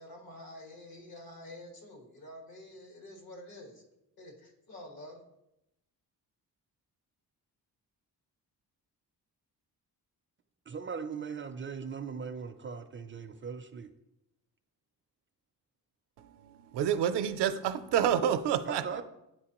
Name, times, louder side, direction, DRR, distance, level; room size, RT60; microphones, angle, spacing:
voice 1, 0.0-3.8 4.2-5.2, left 1 dB, 65° left, 1.7 m, -48 dB
voice 2, 10.7-13.9 18.6-19.0, right 6 dB, 30° right, 0.4 m, -39 dB
voice 3, 16.2-19.0, right 9 dB, 85° right, 0.6 m, -29 dB
9.3 x 4.5 x 2.9 m
cardioid pair, 100°, 40 cm